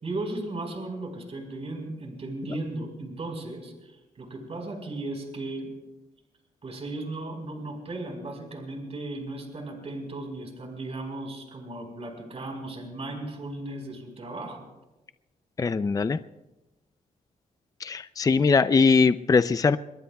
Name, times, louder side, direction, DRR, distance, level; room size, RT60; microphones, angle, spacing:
voice 1, 0.0-5.7 6.6-14.7, right 2 dB, 45° right, 3 dB, 4.6 m, -36 dB
voice 2, 15.6-16.2 17.8-19.8, left 4 dB, 25° left, 12 dB, 0.5 m, -21 dB
27.0 x 22.5 x 2.3 m, 1.0 s
cardioid pair, 95°, 15 cm